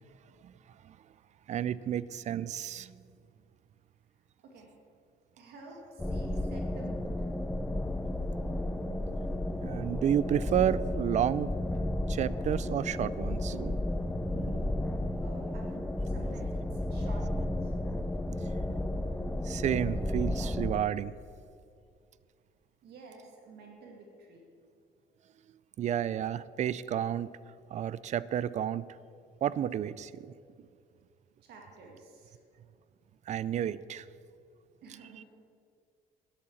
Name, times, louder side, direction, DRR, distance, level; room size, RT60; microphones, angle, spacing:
voice 1, 1.5-2.9 9.6-11.5 12.1-13.8 14.3-14.6 19.4-21.1 25.8-27.3 27.7-28.8 29.4-30.3 33.3-34.0, right 10 dB, 45° right, 19 dB, 0.4 m, -31 dB
voice 2, 5.3-7.3 15.2-15.7 16.1-17.8 22.8-24.4 31.4-32.4 34.8-35.2, right 3 dB, 70° right, 1 dB, 2.0 m, -51 dB
sound 1, 6.0-20.8, left 1 dB, 5° left, 0.6 m, -33 dB
10.5 x 8.6 x 7.2 m, 2.3 s
cardioid pair, 110°, 17 cm